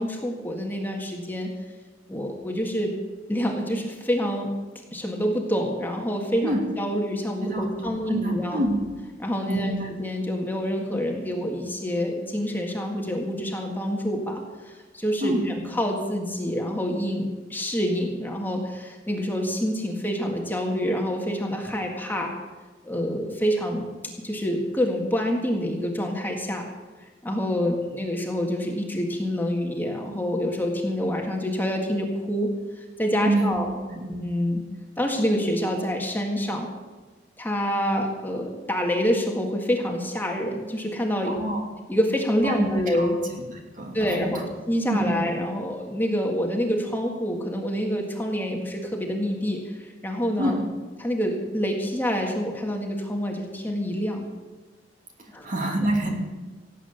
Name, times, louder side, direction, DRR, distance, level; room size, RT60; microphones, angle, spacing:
voice 1, 0.0-1.5 2.1-2.9 3.3-4.5 4.9-8.6 9.2-22.3 22.8-23.9 24.2-26.6 27.2-33.7 34.1-34.6 35.0-36.7 37.4-41.3 41.9-43.2 43.9-50.5 51.0-54.2 55.3-55.5, equal, 10° left, 1 dB, 1.7 m, -27 dB
voice 2, 7.4-8.8 9.5-9.9 15.2-15.4 33.2-33.6 33.9-34.1 41.2-41.6 42.4-43.1 43.5-44.4 44.9-45.2 50.4-50.6 55.4-56.1, right 1 dB, 45° right, 1 dB, 2.8 m, -27 dB
17.5 x 8.6 x 7.0 m, 1.3 s
head